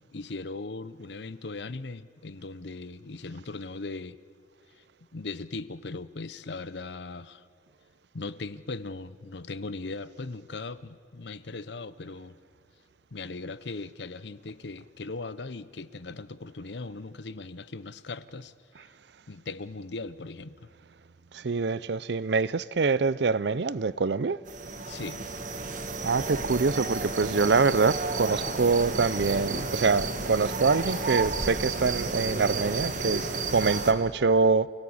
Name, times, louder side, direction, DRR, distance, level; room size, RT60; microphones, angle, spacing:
voice 1, 0.1-4.2 5.1-7.5 8.1-12.4 13.1-18.5 19.3-20.7 24.8-25.3, left 3 dB, 65° left, 0.8 m, -38 dB
voice 2, 21.3-24.4 26.0-34.7, right 4 dB, 65° right, 0.5 m, -25 dB
sound 1, 24.5-33.9, right 3 dB, 45° right, 1.7 m, -32 dB
28.5 x 17.5 x 8.7 m
head